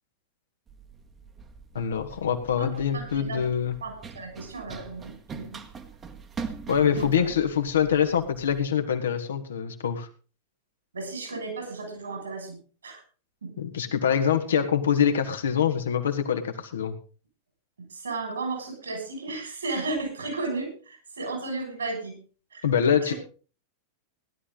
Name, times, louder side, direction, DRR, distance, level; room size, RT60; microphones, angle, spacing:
Run, 0.7-8.6, right 5 dB, 25° right, 1.4 m, -43 dB
voice 1, 1.7-3.8 6.7-10.1 13.6-17.0 22.6-23.1, left 8 dB, 65° left, 6 dB, 1.6 m, -25 dB
voice 2, 2.6-3.4 3.8-5.6 6.8-7.2 10.9-13.0 13.4-13.5 17.9-22.1 22.5-22.7 23.0-23.2, right 3 dB, 75° right, 4 dB, 6.1 m, -34 dB
16.0 x 11.5 x 3.9 m, 0.37 s
figure-of-eight pair, 90°, 0 cm